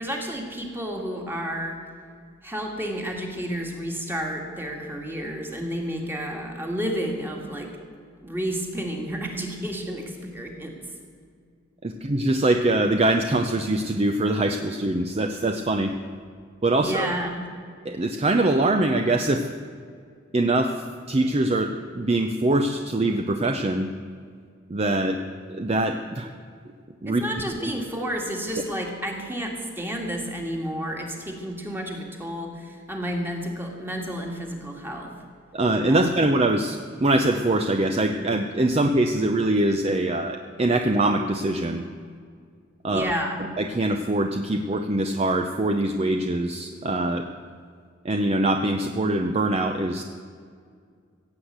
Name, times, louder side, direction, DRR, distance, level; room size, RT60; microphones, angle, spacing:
voice 1, 0.0-1.8 2.4-7.8 8.2-10.9 16.8-17.4 27.0-35.1 35.9-36.1 42.8-43.4, equal, 10° right, 1 dB, 1.9 m, -31 dB
voice 2, 11.8-15.9 16.6-17.1 17.8-19.6 20.3-23.9 24.7-25.2 25.5-26.3 27.0-27.2 35.5-41.8 42.8-43.1 43.6-47.2 48.0-50.0, right 2 dB, 30° right, 6 dB, 0.6 m, -23 dB
16.5 x 8.1 x 8.0 m, 2.1 s
head